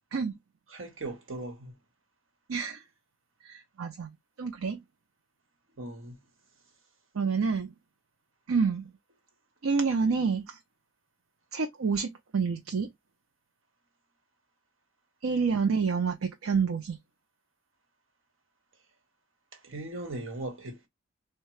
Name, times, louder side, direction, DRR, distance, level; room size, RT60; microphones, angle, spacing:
voice 1, 0.7-1.7 5.8-6.2 19.6-20.9, right 2 dB, 70° right, 1.3 m, -38 dB
voice 2, 2.5-2.8 3.4-4.1 4.4-4.8 7.1-7.7 8.5-8.9 9.6-10.6 11.5-12.9 15.2-17.0, right 5 dB, 90° right, 0.6 m, -28 dB
3.6 x 2.3 x 3.1 m
head